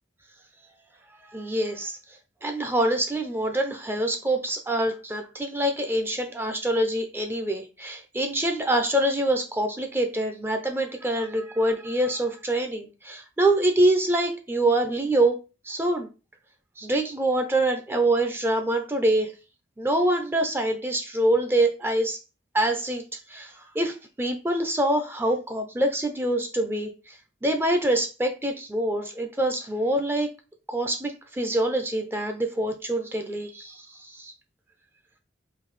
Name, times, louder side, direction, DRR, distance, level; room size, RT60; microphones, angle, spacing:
voice 1, 1.3-2.0 2.4-15.4 15.7-16.1 16.8-19.3 19.8-22.2 22.5-23.0 23.3-27.2 27.4-30.3 30.7-34.3, right 1 dB, 10° right, 5 dB, 0.4 m, -25 dB
3.8 x 2.7 x 3.0 m, 0.31 s
head